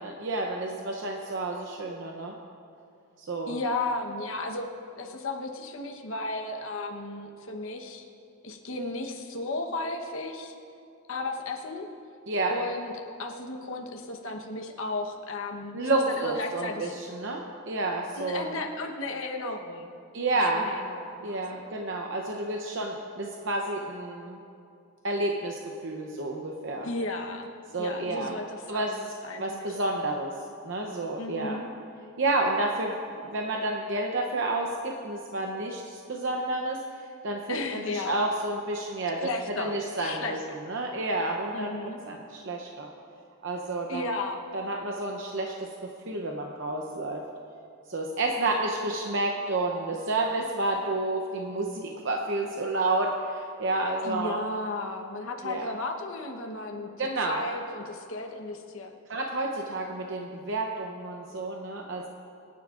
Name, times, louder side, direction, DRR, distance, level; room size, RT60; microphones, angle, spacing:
voice 1, 0.0-2.4 3.2-3.6 12.3-12.6 15.7-18.6 20.1-20.7 21.2-24.4 25.0-26.9 27.7-28.4 28.7-29.1 29.4-30.3 30.6-31.6 32.2-40.4 40.7-42.9 43.4-44.0 44.5-47.3 47.9-54.4 55.4-55.7 57.0-57.4 59.1-62.1, right 2 dB, 60° right, 1 dB, 0.8 m, -30 dB
voice 2, 3.5-4.7 5.0-8.0 8.4-10.5 11.1-11.9 12.5-16.9 18.2-19.9 20.4-21.4 26.8-27.5 27.8-29.8 31.2-31.7 37.5-38.2 39.2-40.4 41.5-42.0 43.9-44.4 54.0-58.9, left 2 dB, 70° left, 2 dB, 1.1 m, -34 dB
25.0 x 9.6 x 2.5 m, 2.5 s
head